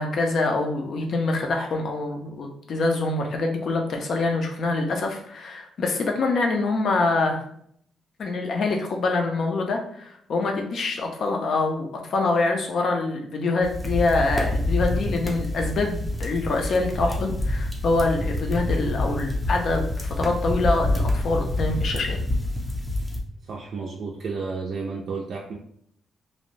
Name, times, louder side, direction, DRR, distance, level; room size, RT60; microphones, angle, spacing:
voice 1, 0.0-7.4 8.2-22.2, left 3 dB, 60° left, 2 dB, 0.5 m, -25 dB
sound 1, 13.6-23.2, left 1 dB, 5° left, 0.5 m, -27 dB
voice 2, 23.4-25.5, right 4 dB, 60° right, -2 dB, 0.4 m, -32 dB
2.6 x 2.0 x 3.1 m, 0.67 s
cardioid pair, 115°, 0 cm